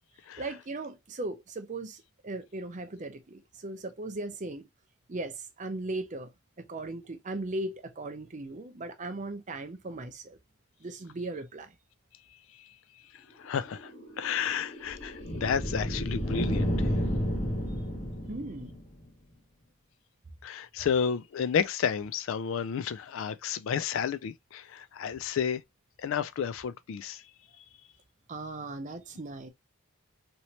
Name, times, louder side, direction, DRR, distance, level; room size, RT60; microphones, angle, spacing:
voice 1, 0.4-4.6 5.1-6.3 6.6-10.4 10.8-11.7 18.3-18.8 28.3-29.5, right 2 dB, 35° right, 0.5 m, -38 dB
voice 2, 13.1-16.9 20.4-25.6 26.0-27.2, left 7 dB, 60° left, 0.3 m, -31 dB
sound 1, 13.4-19.0, equal, 30° left, 1.0 m, -32 dB
3.1 x 2.8 x 2.7 m
head